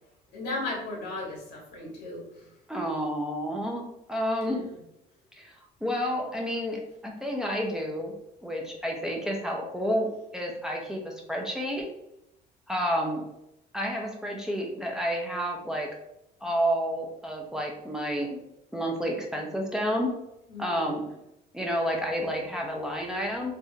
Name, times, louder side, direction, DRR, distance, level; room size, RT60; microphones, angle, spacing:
voice 1, 0.3-2.6 4.4-4.8 20.5-21.1, left 2 dB, 90° left, -2 dB, 1.4 m, -36 dB
voice 2, 2.7-4.6 5.4-5.5 5.8-8.1 8.4-11.8 12.7-13.2 13.7-15.9 16.4-18.4 18.7-20.1 20.6-21.0 21.5-23.5, equal, 5° right, -1 dB, 0.6 m, -30 dB
3.5 x 2.6 x 2.7 m, 0.83 s
cardioid pair, 110°, 17 cm